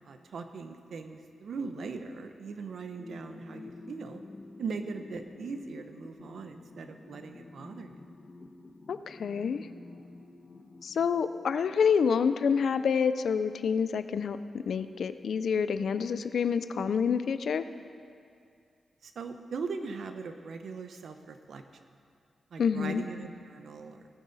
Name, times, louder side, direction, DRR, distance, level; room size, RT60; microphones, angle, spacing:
voice 1, 0.0-4.2 4.6-8.1 19.0-21.6 22.5-24.1, right 4 dB, 70° right, 7 dB, 0.8 m, -40 dB
sound 1, 3.0-12.0, left 3 dB, 45° left, 0.9 m, -50 dB
voice 2, 8.9-9.7 10.8-17.7 22.6-23.0, left 6 dB, 75° left, 12 dB, 0.5 m, -28 dB
17.5 x 9.5 x 4.1 m, 2.3 s
cardioid pair, 90°, 0 cm